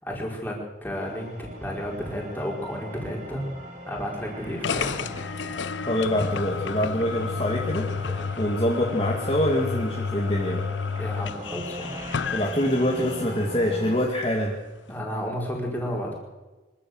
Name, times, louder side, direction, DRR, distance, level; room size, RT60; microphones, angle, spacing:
voice 1, 0.0-3.5 3.8-5.1 11.0-12.0 14.9-16.1, equal, 10° left, -2 dB, 4.9 m, -32 dB
sound 1, 0.9-14.1, equal, 40° right, 2.8 m, -40 dB
Waves surf, 3.4-6.7 7.0-13.9 14.2-15.1, equal, 20° right, 3.6 m, -48 dB
sound 2, 4.6-13.4, left 5 dB, 80° left, 0.5 m, -31 dB
voice 2, 5.9-10.6 12.3-14.6, left 1 dB, 30° left, -2 dB, 2.3 m, -25 dB
24.5 x 14.0 x 7.9 m, 1.2 s
head